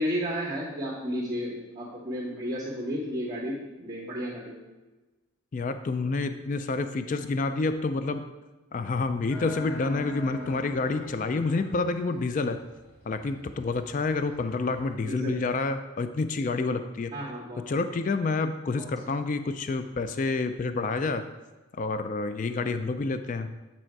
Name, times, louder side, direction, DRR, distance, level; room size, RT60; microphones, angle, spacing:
voice 1, 0.0-4.6 15.0-15.4 17.1-17.7 18.7-19.1, equal, 20° right, -9 dB, 2.4 m, -33 dB
voice 2, 5.5-8.2 8.7-12.6 13.1-17.1 17.7-21.2 21.7-23.5, left 3 dB, 35° left, 9 dB, 0.3 m, -28 dB
sound 1, 9.3-15.0, left 4 dB, 70° left, 2.1 m, -43 dB
8.9 x 4.3 x 4.6 m, 1.2 s
head